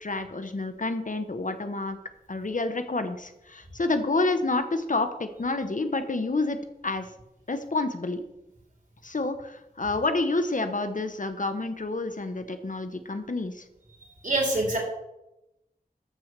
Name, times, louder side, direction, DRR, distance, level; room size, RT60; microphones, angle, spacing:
voice 1, 0.0-2.0 2.3-6.6 6.8-7.1 7.5-8.2 9.0-13.6, left 2 dB, 55° left, 9 dB, 1.0 m, -29 dB
voice 2, 14.0-14.8, right 2 dB, 55° right, -2 dB, 4.4 m, -26 dB
13.0 x 4.6 x 6.7 m, 0.89 s
wide cardioid pair, 65°, 16 cm